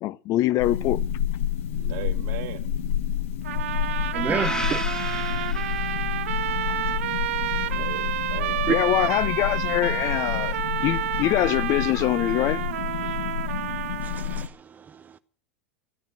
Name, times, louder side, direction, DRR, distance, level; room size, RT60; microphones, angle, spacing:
voice 1, 0.0-1.0 8.7-10.6 10.8-12.6, left 15 dB, 45° left, 0.7 m, -24 dB
sound 1, 0.6-14.5, left 9 dB, 75° left, 1.5 m, -29 dB
voice 2, 1.8-2.6 6.9-7.2 7.7-8.7, right 15 dB, 60° right, 1.9 m, -38 dB
sound 2, 3.4-14.5, right 13 dB, 75° right, 1.0 m, -30 dB
voice 3, 4.1-4.8 8.7-8.8 14.0-15.0, right 7 dB, 25° right, 0.8 m, -29 dB
sound 3, 4.3-6.5, left 2 dB, 10° left, 1.2 m, -34 dB
14.0 x 11.5 x 7.6 m
hypercardioid pair, 95°, 7 cm